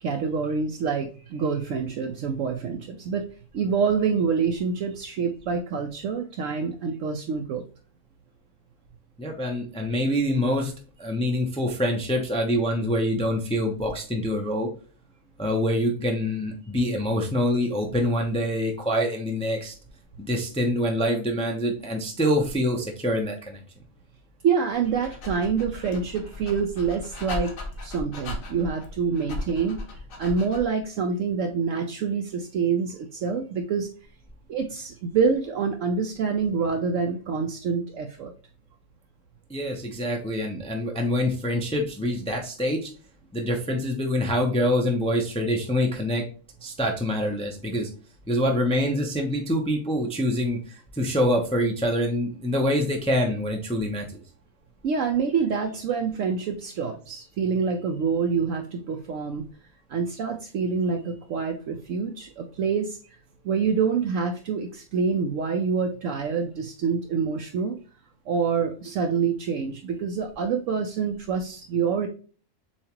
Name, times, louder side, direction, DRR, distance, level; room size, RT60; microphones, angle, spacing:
voice 1, 0.0-3.3 3.5-7.6 24.4-27.5 27.8-29.8 30.2-33.9 34.5-38.3 54.8-59.5 59.9-63.0 63.4-67.8 68.3-72.1, right 5 dB, 70° right, 3 dB, 0.9 m, -26 dB
voice 2, 9.2-10.7 11.0-14.7 15.4-19.7 20.2-23.6 39.5-42.9 43.3-46.2 46.6-47.9 48.3-54.2, equal, 5° left, 2 dB, 0.5 m, -25 dB
Dog, 24.7-30.8, left 2 dB, 75° left, 1.4 m, -37 dB
7.1 x 2.4 x 2.9 m, 0.38 s
omnidirectional pair, 1.5 m